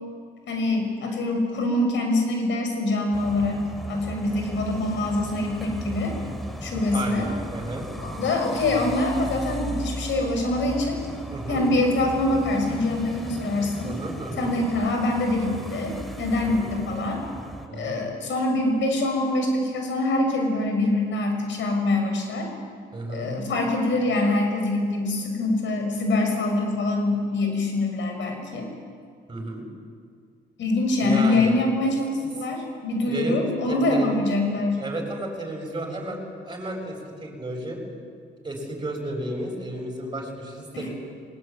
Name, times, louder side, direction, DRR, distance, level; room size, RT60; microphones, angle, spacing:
voice 1, 0.5-3.6 3.9-6.2 6.6-7.3 8.0-11.0 11.5-13.9 14.4-17.2 17.7-22.5 23.1-28.7 30.6-34.8 40.8-40.9, left 2 dB, 70° left, 3 dB, 7.1 m, -24 dB
sound 1, 3.1-17.7, right 1 dB, ahead, 3.0 m, -36 dB
voice 2, 6.9-7.9 11.3-11.6 13.8-14.5 16.5-16.8 17.7-18.0 22.9-23.3 29.3-29.7 31.0-31.5 32.2-32.3 33.0-33.4 33.7-34.2 34.8-36.9 37.2-37.8 38.4-40.9, right 1 dB, 20° right, 1 dB, 7.7 m, -33 dB
21.5 x 20.0 x 9.4 m, 2.2 s
cardioid pair, 90°, 20 cm